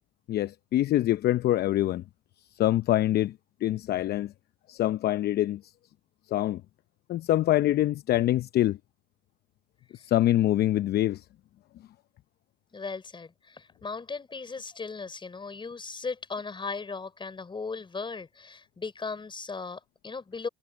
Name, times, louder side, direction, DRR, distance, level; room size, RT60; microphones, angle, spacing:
voice 1, 0.3-2.0 2.6-3.4 3.6-4.3 4.7-5.7 6.3-6.6 7.1-8.8 9.9-11.2, left 14 dB, 50° left, 0.8 m, -25 dB
voice 2, 12.7-20.5, left 4 dB, 25° left, 4.9 m, -37 dB
hypercardioid pair, 75°, 21 cm